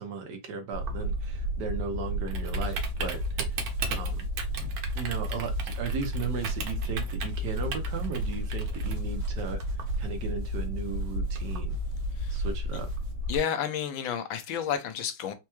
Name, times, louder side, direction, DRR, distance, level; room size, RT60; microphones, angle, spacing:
voice 1, 0.0-4.3 4.6-9.6 10.0-11.8 12.3-12.9, right 5 dB, 65° right, 1.3 m, -36 dB
Typing, 0.7-13.4, right 1 dB, 85° right, 1.7 m, -31 dB
sound 1, 2.6-13.1, right 2 dB, 40° right, 1.2 m, -51 dB
voice 2, 12.1-12.5 13.3-15.3, left 9 dB, 85° left, 1.4 m, -31 dB
4.5 x 2.2 x 3.0 m
omnidirectional pair, 2.2 m